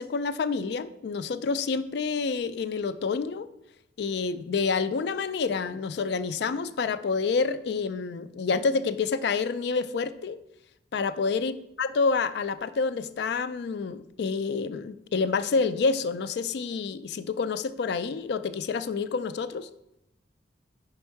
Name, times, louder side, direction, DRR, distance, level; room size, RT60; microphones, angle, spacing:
voice 1, 0.0-3.5 4.0-10.4 10.9-19.7, left 4 dB, 60° left, 13 dB, 0.3 m, -28 dB
5.2 x 4.4 x 4.6 m, 0.85 s
head